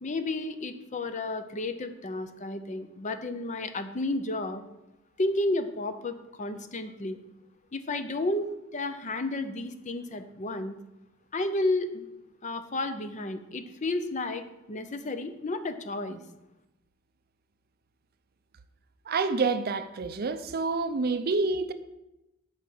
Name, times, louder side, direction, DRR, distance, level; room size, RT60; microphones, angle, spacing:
voice 1, 0.0-4.6 5.2-7.2 7.7-10.7 11.3-12.1 12.4-16.2, left 2 dB, 35° left, 0.6 m, -32 dB
voice 2, 19.1-21.7, right 3 dB, 45° right, 0.5 m, -28 dB
8.3 x 5.2 x 6.0 m
head